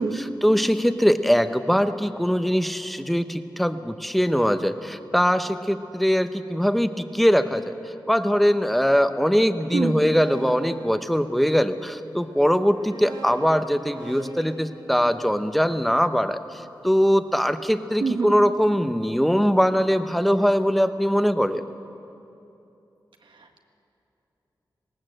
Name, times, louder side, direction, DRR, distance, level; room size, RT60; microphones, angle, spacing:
voice 1, 0.4-21.6, equal, ahead, 10 dB, 0.8 m, -22 dB
voice 2, 9.7-10.0 18.0-18.4 23.2-23.6, right 4 dB, 85° right, 4 dB, 1.6 m, -27 dB
sound 1, 10.0-11.7 12.5-16.7, right 4 dB, 65° right, 2.2 m, -44 dB
19.5 x 18.5 x 7.7 m, 2.9 s
wide cardioid pair, 115°, 8 cm